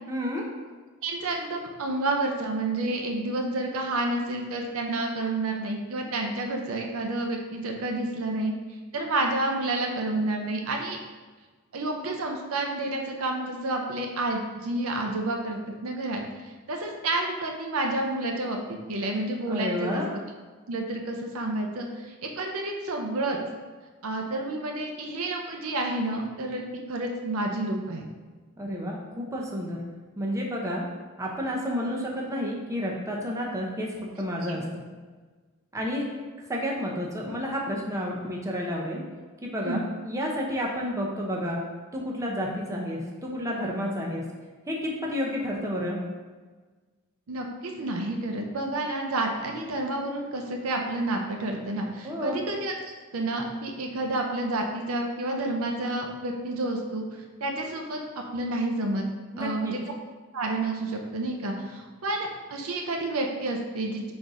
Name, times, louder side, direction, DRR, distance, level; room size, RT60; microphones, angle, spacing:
voice 1, 0.1-0.5 19.5-20.1 28.6-29.8 30.2-30.9 31.2-34.7 35.7-36.1 36.5-39.0 39.4-41.6 41.9-44.3 44.7-46.0 52.0-52.4 59.3-59.7, equal, 15° right, -2 dB, 0.6 m, -30 dB
voice 2, 1.0-8.5 8.9-11.0 11.7-20.0 20.7-23.4 24.0-28.0 34.5-34.6 39.6-39.9 47.3-57.0 57.4-59.0 59.4-59.8 60.3-64.1, right 2 dB, 75° right, 2 dB, 0.6 m, -30 dB
3.9 x 2.6 x 4.7 m, 1.4 s
head